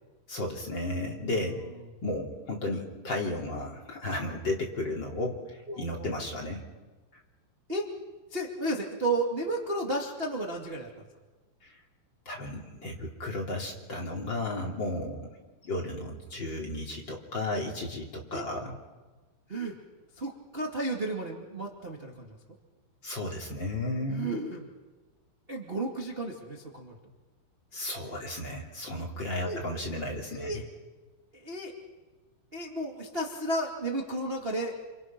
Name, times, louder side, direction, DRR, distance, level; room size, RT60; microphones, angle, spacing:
voice 1, 0.3-1.6 2.0-6.6 12.2-15.3 15.6-18.8 23.0-24.3 27.7-30.6, left 1 dB, 30° left, -1 dB, 2.9 m, -34 dB
voice 2, 1.3-1.7 5.7-6.0 7.7-7.8 8.3-11.0 18.3-18.5 19.5-19.7 20.1-22.4 24.1-24.7 25.5-26.9 29.3-29.6 30.3-30.7 31.3-31.7 32.5-34.7, right 2 dB, 30° right, -1 dB, 1.1 m, -33 dB
29.5 x 27.0 x 6.1 m, 1.3 s
omnidirectional pair, 5.3 m